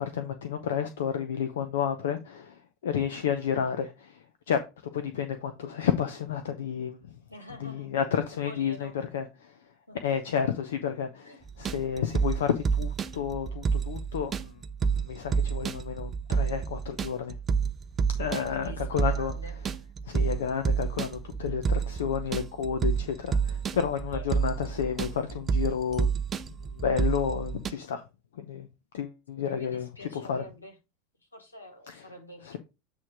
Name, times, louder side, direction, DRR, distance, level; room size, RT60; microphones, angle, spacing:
voice 1, 0.0-7.2 7.6-9.6 10.0-14.6 15.1-17.3 18.2-19.3 20.0-26.1 26.3-28.0 28.3-28.7 28.9-30.4 31.9-32.0 32.4-32.6, left 8 dB, 65° left, 0.7 m, -31 dB
voice 2, 7.3-7.9 8.4-9.0 9.9-10.4 11.2-11.4 18.3-19.5 24.1-24.2 29.3-30.8 31.3-32.6, equal, 85° left, 2.2 m, -46 dB
sound 1, 11.5-27.7, right 6 dB, 30° right, 0.6 m, -29 dB
8.4 x 3.2 x 4.8 m
figure-of-eight pair, 80°, 0 cm